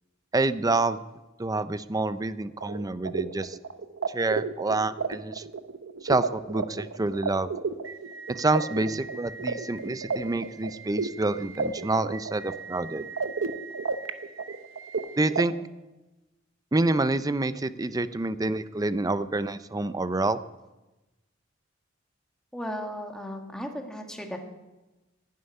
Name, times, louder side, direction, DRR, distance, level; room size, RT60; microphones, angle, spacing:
voice 1, 0.3-1.0 1.4-3.6 4.1-5.4 6.0-7.5 8.3-13.0 15.2-15.5 16.7-20.4, right 2 dB, 20° right, 13 dB, 0.5 m, -27 dB
sound 1, 2.6-15.4, right 4 dB, 80° right, 0.9 m, -33 dB
voice 2, 22.5-24.4, equal, 5° left, 2 dB, 1.8 m, -35 dB
11.5 x 11.0 x 9.9 m, 1.1 s
head